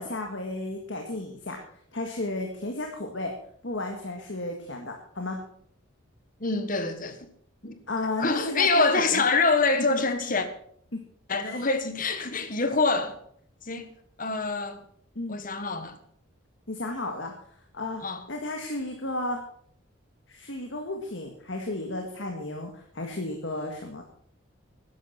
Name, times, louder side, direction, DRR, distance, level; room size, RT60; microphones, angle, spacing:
voice 1, 0.0-1.6 1.9-3.3 3.6-5.4 7.9-9.2 9.9-10.0 11.4-11.6 15.2-15.4 16.7-17.3 17.7-18.0 18.3-19.4 20.3-24.0, left 2 dB, 65° left, 1.8 m, -33 dB
voice 2, 6.4-7.2 7.6-7.8 8.2-10.5 11.3-13.2 13.7-13.9 14.2-14.8 15.3-16.0 18.0-18.2, left 3 dB, 40° left, 1.5 m, -25 dB
12.5 x 11.0 x 5.8 m
head